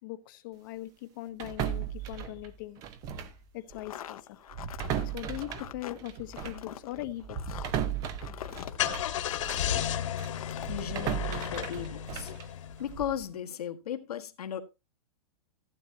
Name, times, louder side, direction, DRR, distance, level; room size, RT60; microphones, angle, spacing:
voice 1, 0.0-2.8 3.5-4.4 5.0-7.6, left 16 dB, 35° left, 1.0 m, -40 dB
sound 1, 1.4-3.4 3.7-3.9 4.5-9.7 10.2-13.2, right 8 dB, 20° right, 0.7 m, -36 dB
sound 2, 3.7-9.9 10.2-10.8, left 10 dB, 75° left, 1.0 m, -45 dB
Car / Engine starting, 8.4-13.1, left 10 dB, 55° left, 1.5 m, -33 dB
voice 2, 10.7-12.3 12.8-14.6, left 9 dB, 90° left, 1.6 m, -36 dB
15.5 x 8.8 x 2.8 m
supercardioid pair, 170°, 19 cm